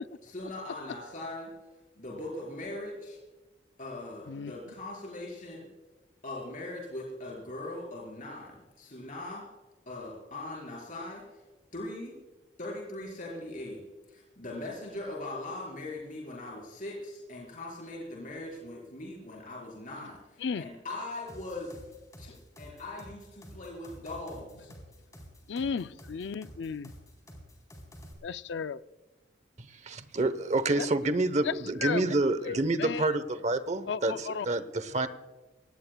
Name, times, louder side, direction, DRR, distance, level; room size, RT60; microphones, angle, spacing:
voice 1, 0.2-1.5 2.0-3.2 3.8-5.7 6.2-9.5 9.9-11.4 11.7-12.1 12.6-13.8 14.1-21.8 22.2-24.7, left 2 dB, 45° left, -3 dB, 4.7 m, -40 dB
sound 1, 21.3-28.1, equal, 20° left, 3.8 m, -49 dB
voice 2, 25.5-26.9 28.2-28.8 30.8-30.9 31.4-31.5 31.8-32.1 32.4-33.1 33.9-34.5, left 6 dB, 70° left, 14 dB, 0.4 m, -34 dB
voice 3, 29.6-35.1, right 2 dB, 40° right, 13 dB, 0.9 m, -28 dB
24.0 x 18.5 x 2.3 m, 1.2 s
head